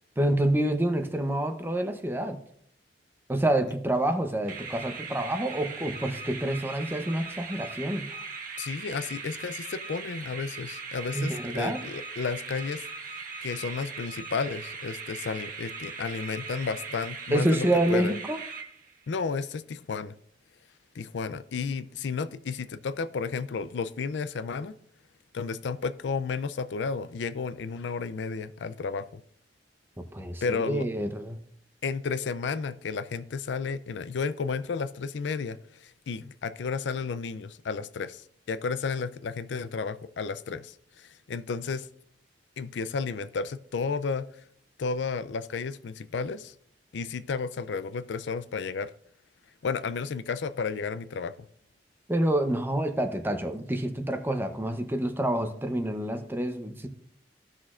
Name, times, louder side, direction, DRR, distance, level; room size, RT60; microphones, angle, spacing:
voice 1, 0.2-2.4 3.3-8.1 11.1-11.8 17.3-18.4 30.1-31.4 52.1-56.9, right 1 dB, 15° right, 7 dB, 0.7 m, -27 dB
sound 1, 4.5-19.1, right 4 dB, 50° right, 1.1 m, -39 dB
voice 2, 8.6-12.8 13.4-18.1 19.1-20.1 21.0-24.7 25.3-29.2 30.4-30.9 31.8-35.6 36.1-38.2 38.5-41.9 42.6-44.3 44.8-46.5 46.9-48.9 49.6-51.3, left 5 dB, 85° left, 14 dB, 0.4 m, -32 dB
16.0 x 6.2 x 2.5 m, 0.65 s
head